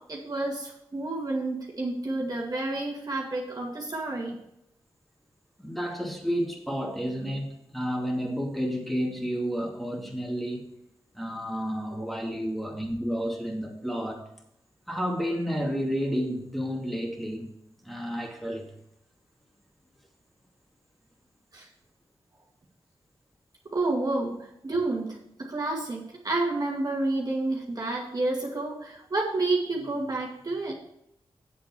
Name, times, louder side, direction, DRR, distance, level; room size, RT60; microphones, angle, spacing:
voice 1, 0.0-4.4 21.5-21.7 23.7-30.7, right 2 dB, 45° right, -2 dB, 2.1 m, -30 dB
voice 2, 5.6-10.7 11.1-14.3 14.9-17.5 17.8-18.7, equal, ahead, 0 dB, 2.6 m, -31 dB
8.7 x 7.4 x 4.5 m, 0.77 s
cardioid pair, 70°, 10 cm